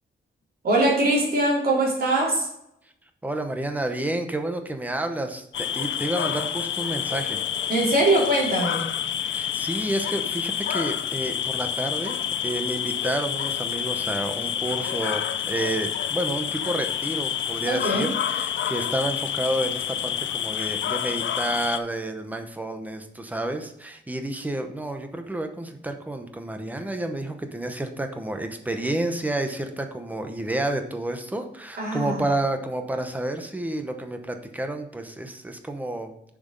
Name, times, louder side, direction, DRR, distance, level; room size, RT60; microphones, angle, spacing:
voice 1, 0.6-2.5 7.7-8.8 17.6-18.1 31.8-32.2, right 2 dB, 50° right, -3 dB, 3.4 m, -22 dB
voice 2, 3.2-7.4 9.3-36.1, right 1 dB, 10° right, 6 dB, 0.8 m, -30 dB
sound 1, 5.5-21.8, left 9 dB, 70° left, 0.5 m, -28 dB
6.9 x 6.1 x 5.3 m, 0.78 s
wide cardioid pair, 180°, 20 cm